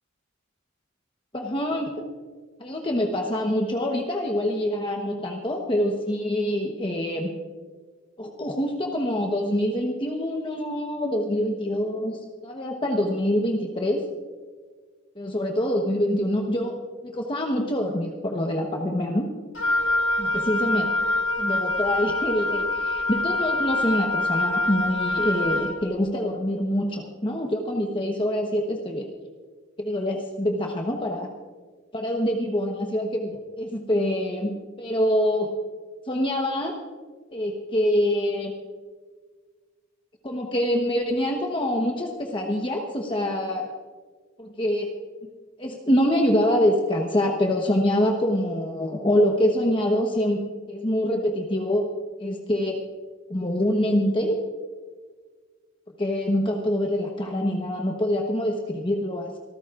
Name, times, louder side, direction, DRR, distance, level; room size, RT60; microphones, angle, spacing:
voice 1, 1.3-1.9 2.6-7.3 8.2-14.0 15.2-16.8 17.0-19.3 20.2-20.9 21.4-29.1 29.8-31.3 31.9-35.5 36.1-36.8 37.3-38.5 40.2-43.8 44.4-44.9 45.6-50.4 50.7-51.9 52.2-52.8 53.3-54.4 56.0-59.4, left 1 dB, 25° left, 1 dB, 1.1 m, -25 dB
Wind instrument woodwind instrument, 19.6-25.8, left 2 dB, 70° left, 1.7 m, -25 dB
25.0 x 14.0 x 2.5 m, 1.5 s
head